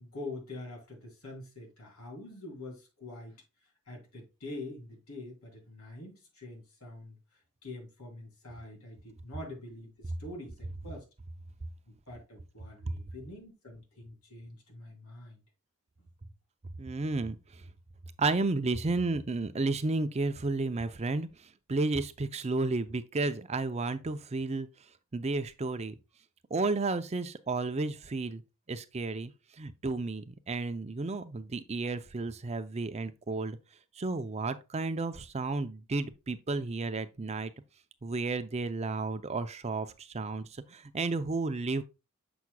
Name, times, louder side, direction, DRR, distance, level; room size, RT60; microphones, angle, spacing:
voice 1, 0.0-3.4 3.9-11.1 11.9-15.4 16.0-16.1, left 2 dB, 80° left, 3.3 m, -45 dB
voice 2, 16.8-17.4 18.2-21.3 21.7-24.7 25.1-25.9 26.5-28.4 28.7-29.3 29.6-33.6 34.0-37.5 38.0-41.8, right 3 dB, 30° right, 0.5 m, -32 dB
7.0 x 6.2 x 2.3 m
head